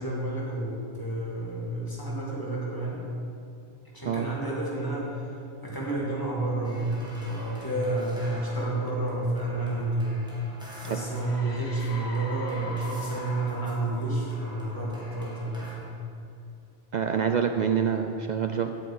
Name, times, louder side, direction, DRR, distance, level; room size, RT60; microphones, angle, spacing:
voice 1, 0.0-3.0 3.9-5.2 5.6-10.1 10.8-16.0, right 2 dB, 20° left, -5 dB, 2.4 m, -30 dB
sound 1, 6.6-15.7, equal, 5° right, 1.9 m, -47 dB
sound 2, 10.9-15.5, left 2 dB, 70° left, 1.5 m, -42 dB
voice 2, 16.9-18.7, right 7 dB, 55° right, 6 dB, 0.5 m, -26 dB
8.7 x 6.8 x 8.4 m, 2.6 s
omnidirectional pair, 1.2 m